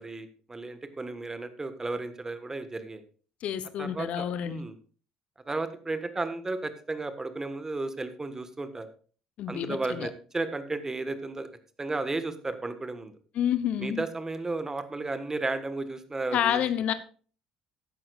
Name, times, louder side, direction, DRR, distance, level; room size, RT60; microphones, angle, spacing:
voice 1, 0.0-3.0 3.8-4.7 5.5-8.9 9.5-11.5 11.8-13.1 13.8-16.6, right 3 dB, 20° right, 10 dB, 1.5 m, -34 dB
voice 2, 3.4-4.6 9.4-10.1 13.3-14.0 16.3-16.9, left 10 dB, 55° left, 13 dB, 0.8 m, -29 dB
14.5 x 11.0 x 2.5 m, 0.40 s
figure-of-eight pair, 55°, 3 cm